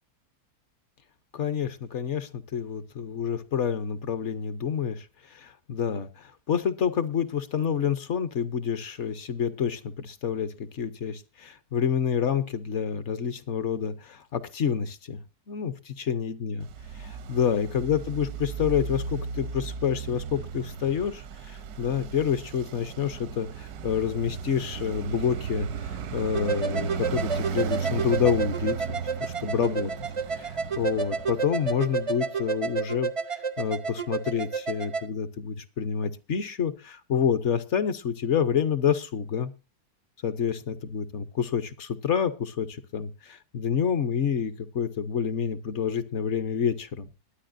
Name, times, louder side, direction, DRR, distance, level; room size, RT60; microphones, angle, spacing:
voice 1, 1.3-15.2 15.5-16.7 16.9-29.9 30.3-39.5 40.2-47.1, left 7 dB, 55° left, 12 dB, 0.9 m, -28 dB
Traffic noise roadway noise, 16.6-32.1, right 6 dB, 80° right, 1.3 m, -35 dB
sound 1, 26.3-35.0, right 5 dB, 50° right, 0.3 m, -31 dB
21.5 x 9.4 x 2.5 m, 0.29 s
omnidirectional pair, 1.7 m